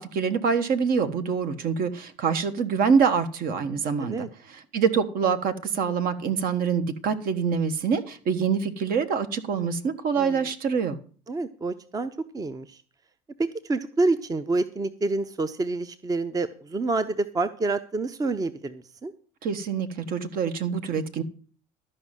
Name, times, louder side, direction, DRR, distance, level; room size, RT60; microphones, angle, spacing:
voice 1, 0.0-4.3 4.7-11.0 19.4-21.2, right 6 dB, 55° right, 1.3 m, -25 dB
voice 2, 10.2-10.5 11.3-12.8 13.4-19.1, right 3 dB, 20° right, 0.7 m, -28 dB
12.5 x 5.4 x 7.5 m
supercardioid pair, 90°, 18 cm